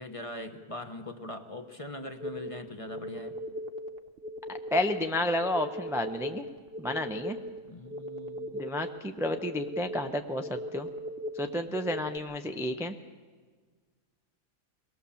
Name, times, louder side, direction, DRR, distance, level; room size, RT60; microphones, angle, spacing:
voice 1, 0.0-3.4 7.7-8.7, left 1 dB, 25° left, 7 dB, 0.9 m, -41 dB
sound 1, 2.2-12.2, equal, 45° right, 0.9 m, -39 dB
voice 2, 4.5-6.4 6.8-7.4 8.5-10.9 11.4-12.9, left 1 dB, 5° right, 6 dB, 0.4 m, -31 dB
23.5 x 19.0 x 7.1 m, 1.5 s
omnidirectional pair, 1.7 m